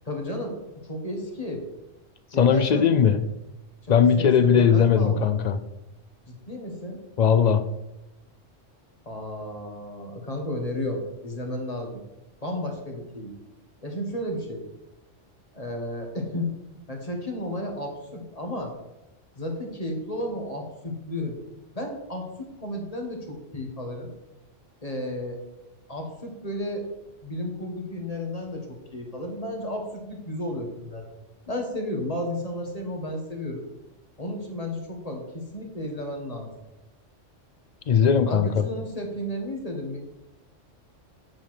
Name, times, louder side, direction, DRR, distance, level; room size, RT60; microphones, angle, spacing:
voice 1, 0.0-1.6 2.3-2.9 3.8-5.3 6.3-7.0 9.0-12.0 12.4-13.4 13.8-14.6 15.5-16.5 16.9-18.7 19.3-21.4 21.7-24.1 24.8-25.4 25.9-26.9 27.2-31.1 31.5-33.6 34.2-36.5 38.3-40.0, left 1 dB, 30° left, 2 dB, 1.7 m, -33 dB
voice 2, 2.4-3.2 3.9-5.6 7.2-7.7 37.9-38.6, left 7 dB, 85° left, 10 dB, 0.3 m, -19 dB
8.5 x 5.3 x 5.8 m, 0.95 s
omnidirectional pair, 1.3 m